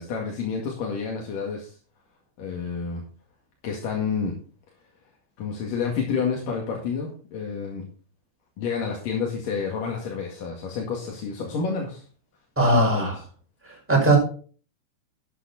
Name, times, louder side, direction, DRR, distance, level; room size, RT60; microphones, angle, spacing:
voice 1, 0.0-1.8 2.4-3.0 3.6-4.3 5.4-7.8 8.6-12.0 12.7-13.1, left 5 dB, 55° left, 0 dB, 3.0 m, -29 dB
voice 2, 12.6-13.2 13.9-14.2, right 2 dB, 5° right, -2 dB, 4.7 m, -19 dB
12.5 x 8.6 x 4.1 m, 0.40 s
omnidirectional pair, 5.6 m